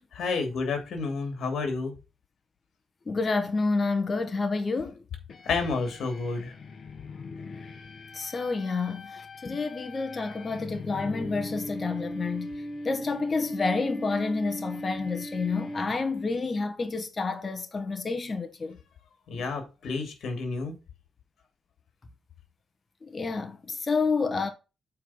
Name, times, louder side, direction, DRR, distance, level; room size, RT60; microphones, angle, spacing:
voice 1, 0.2-1.9 5.4-6.5 19.3-20.7, left 4 dB, 65° left, 2.9 m, -30 dB
voice 2, 3.1-5.0 8.1-12.5 12.8-18.8 19.3-19.4 23.0-24.5, left 4 dB, 30° left, 1.3 m, -29 dB
sound 1, 5.3-16.4, left 1 dB, 50° left, 1.5 m, -39 dB
7.8 x 4.7 x 5.8 m
cardioid pair, 105°, 0 cm